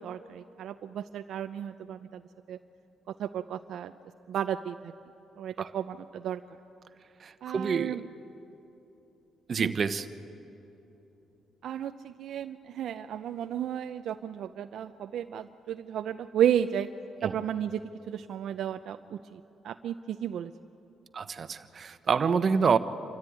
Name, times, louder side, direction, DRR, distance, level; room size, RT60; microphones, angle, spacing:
voice 1, 0.0-2.2 2.5-2.6 3.1-3.9 4.3-4.9 5.4-6.4 7.4-8.0 9.6-9.7 11.6-16.9 17.2-17.8 18.1-19.4 19.6-20.5, right 10 dB, 70° right, 9 dB, 0.5 m, -33 dB
voice 2, 7.2-8.0 9.5-10.1 17.2-17.4 21.1-22.8, right 6 dB, 45° right, 11 dB, 1.0 m, -27 dB
27.0 x 13.5 x 9.4 m, 3.0 s
cardioid pair, 90°, 0 cm